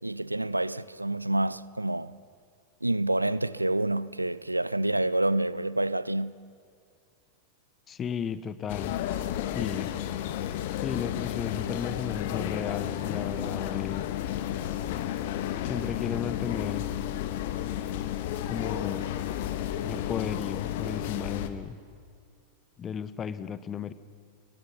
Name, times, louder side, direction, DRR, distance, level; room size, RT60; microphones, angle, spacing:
voice 1, 0.0-2.1 2.8-6.3, right 1 dB, 85° right, 0.6 m, -28 dB
voice 2, 7.9-9.0 9.5-9.9 10.8-14.1 15.6-16.9 18.5-19.1 19.8-21.8 22.8-23.9, left 7 dB, 25° left, 1.1 m, -34 dB
sound 1, 8.7-21.5, left 11 dB, 50° left, 1.5 m, -32 dB
29.5 x 22.0 x 5.8 m
figure-of-eight pair, 90°, 0 cm